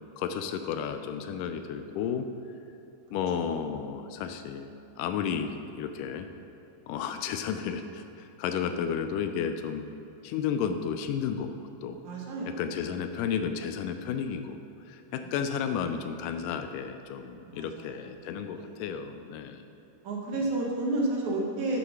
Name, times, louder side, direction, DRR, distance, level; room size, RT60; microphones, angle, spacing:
voice 1, 0.2-2.3 3.1-4.7 5.0-5.5 5.8-6.3 6.9-9.8 10.2-12.0 12.5-14.6 14.9-19.6, left 7 dB, 90° left, 7 dB, 2.2 m, -32 dB
voice 2, 12.0-12.6 17.4-18.0 18.5-18.8 20.0-21.8, right 2 dB, 65° right, -2 dB, 2.5 m, -31 dB
9.6 x 6.0 x 6.0 m, 3.0 s
omnidirectional pair, 3.7 m